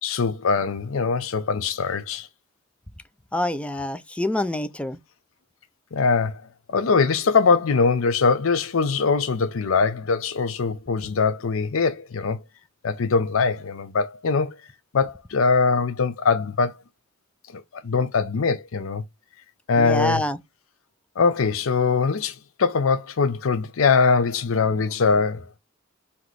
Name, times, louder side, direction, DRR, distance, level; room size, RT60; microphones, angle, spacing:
voice 1, 0.0-2.3 5.9-6.4 6.7-12.4 12.8-14.5 14.9-16.7 17.5-19.0 19.7-20.2 21.2-25.5, left 4 dB, 75° left, 0.6 m, -22 dB
voice 2, 3.3-5.0 19.8-20.4, left 1 dB, 5° left, 0.4 m, -26 dB
4.0 x 2.9 x 4.6 m
head